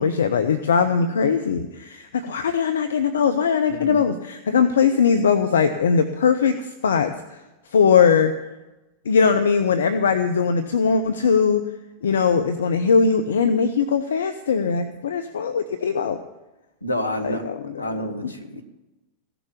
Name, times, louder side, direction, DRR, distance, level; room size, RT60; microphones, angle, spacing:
voice 1, 0.0-7.4 7.7-8.3 9.0-11.6 12.0-16.2 17.2-18.3, left 6 dB, 65° left, 10 dB, 0.7 m, -20 dB
voice 2, 16.8-17.4 17.8-18.6, equal, 85° left, 7 dB, 1.5 m, -28 dB
15.5 x 7.0 x 9.8 m, 1.0 s
figure-of-eight pair, 90°, 0 cm